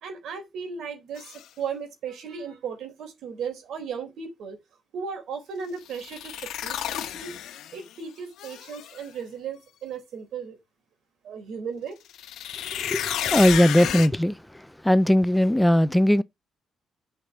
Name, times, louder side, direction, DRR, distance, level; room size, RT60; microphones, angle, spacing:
voice 1, 0.0-4.6 4.9-7.3 7.7-10.6 11.2-12.0, right 6 dB, 75° right, 3.7 m, -36 dB
sound 1, 1.2-1.4 5.9-7.9 8.4-9.0 12.1-14.1, left 11 dB, 80° left, 1.0 m, -32 dB
voice 2, 13.3-14.3 14.8-16.2, left 1 dB, 5° left, 0.5 m, -19 dB
8.0 x 5.8 x 6.1 m
cardioid pair, 90°, 0 cm